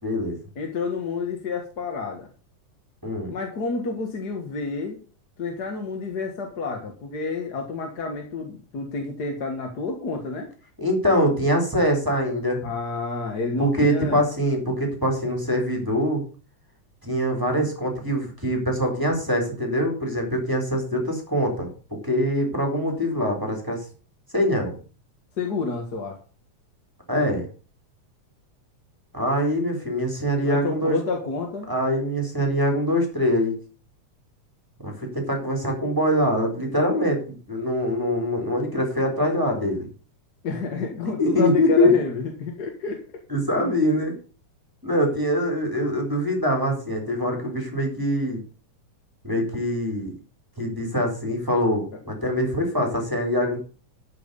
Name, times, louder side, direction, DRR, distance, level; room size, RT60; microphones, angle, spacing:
voice 1, 0.0-0.4 3.0-3.3 10.8-12.6 13.6-16.2 17.0-21.7 22.0-23.8 24.3-24.7 27.1-27.5 29.1-31.0 31.7-33.5 34.8-39.9 41.2-41.9 43.3-44.1 44.8-48.4 49.2-50.1 50.6-53.6, equal, 5° right, 2 dB, 3.7 m, -23 dB
voice 2, 0.5-2.3 3.3-5.0 5.4-10.5 12.6-14.2 25.4-26.2 30.4-31.7 40.4-43.0 43.6-43.7, left 4 dB, 40° left, 2 dB, 1.7 m, -29 dB
12.5 x 6.1 x 6.9 m, 0.37 s
omnidirectional pair, 3.5 m